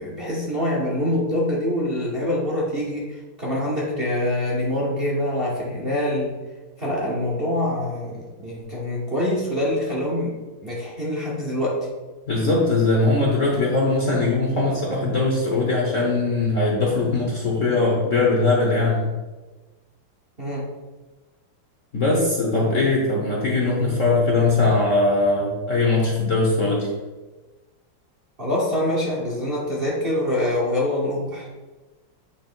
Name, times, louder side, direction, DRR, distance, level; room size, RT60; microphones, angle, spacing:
voice 1, 0.0-6.3 6.8-11.9 20.4-20.7 28.4-31.5, left 1 dB, 35° right, -4 dB, 1.0 m, -25 dB
voice 2, 12.3-19.1 21.9-26.9, left 3 dB, 45° left, -2 dB, 1.1 m, -20 dB
8.5 x 3.0 x 4.5 m, 1.2 s
omnidirectional pair, 2.4 m